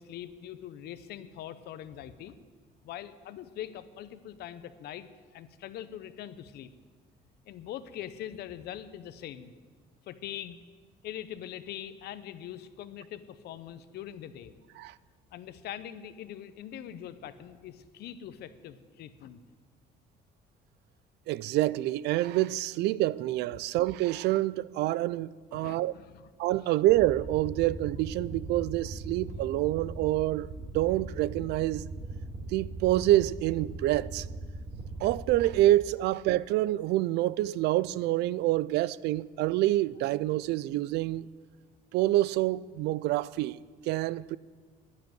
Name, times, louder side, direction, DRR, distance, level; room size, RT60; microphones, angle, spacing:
voice 1, 0.0-2.3 2.8-5.1 5.3-6.7 7.5-9.5 10.1-10.6 11.0-14.5 15.3-19.4 25.5-26.3, left 11 dB, 75° left, 0.9 m, -42 dB
voice 2, 21.3-25.9 26.4-31.8 32.5-34.3 35.0-41.2 41.9-43.6 43.8-44.4, right 15 dB, 80° right, 0.4 m, -27 dB
sound 1, 26.9-35.6, right 2 dB, 60° right, 3.3 m, -40 dB
10.5 x 9.8 x 9.3 m
cardioid pair, 110°, 17 cm